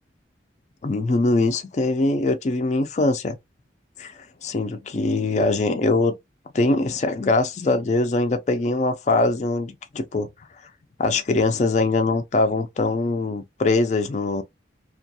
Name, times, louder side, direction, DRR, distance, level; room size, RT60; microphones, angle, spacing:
voice 1, 0.8-3.4 4.0-6.1 6.5-10.3 11.0-14.4, left 2 dB, 40° left, 0.3 m, -22 dB
2.3 x 2.3 x 2.6 m
head